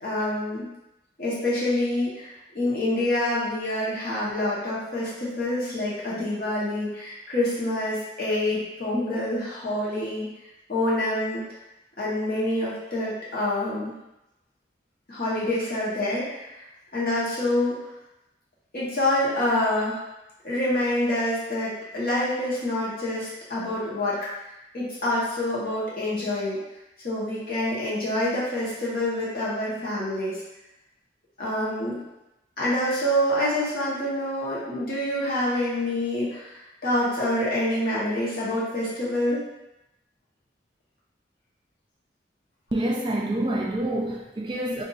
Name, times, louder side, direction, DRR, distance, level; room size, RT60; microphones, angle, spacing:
voice 1, 0.0-0.7 1.2-10.3 10.7-11.4 12.0-13.9 15.1-16.6 16.9-17.8 18.7-20.0 20.4-24.2 24.7-26.6 27.0-30.4 31.4-32.0 32.6-39.4, left 1 dB, 55° left, -8 dB, 1.1 m, -26 dB
voice 2, 42.7-44.8, right 1 dB, 25° right, -1 dB, 0.3 m, -27 dB
2.6 x 2.5 x 4.0 m, 0.94 s
head